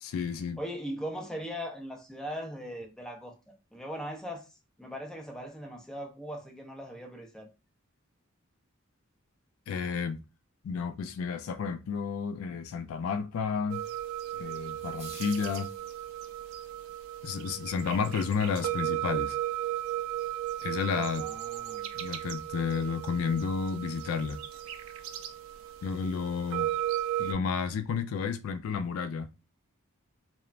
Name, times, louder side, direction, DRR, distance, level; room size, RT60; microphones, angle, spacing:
voice 1, 0.0-0.6 9.7-10.2 10.6-13.8 14.4-15.7 17.2-19.4 20.6-21.3 21.9-24.4 25.8-26.7 27.2-29.3, left 5 dB, 80° left, 0.3 m, -31 dB
voice 2, 0.6-3.3 3.7-4.5 4.8-7.5 21.2-21.9, equal, 5° left, 0.4 m, -39 dB
sound 1, 13.7-27.3, right 13 dB, 80° right, 0.4 m, -35 dB
sound 2, 14.8-16.3, right 3 dB, 30° right, 0.8 m, -50 dB
3.0 x 2.1 x 2.4 m
head